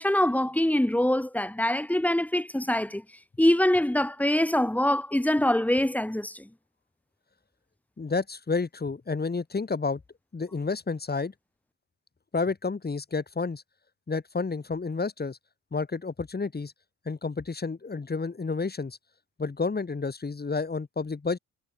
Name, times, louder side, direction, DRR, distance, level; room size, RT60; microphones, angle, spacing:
voice 1, 0.0-3.0 3.4-6.5, left 1 dB, 5° left, 1.6 m, -24 dB
voice 2, 8.0-10.0 10.3-11.3 12.3-13.6 14.1-15.4 15.7-16.7 17.1-19.0 19.4-21.4, left 4 dB, 20° left, 3.6 m, -30 dB
figure-of-eight pair, 50°, 43 cm